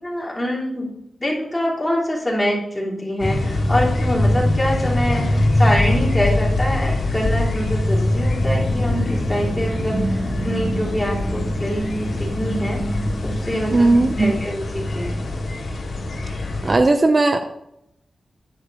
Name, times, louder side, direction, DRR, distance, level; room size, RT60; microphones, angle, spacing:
voice 1, 0.0-0.9 1.2-13.9 14.2-15.2, equal, 15° left, -4 dB, 3.1 m, -25 dB
sound 1, 3.2-16.7, left 1 dB, 75° left, 2.1 m, -23 dB
sound 2, 8.4-14.4, equal, 10° right, 1.9 m, -28 dB
voice 2, 13.7-14.3 16.6-17.4, right 2 dB, 35° right, 7 dB, 0.6 m, -16 dB
9.9 x 5.1 x 5.4 m, 0.82 s
wide cardioid pair, 95°, 0 cm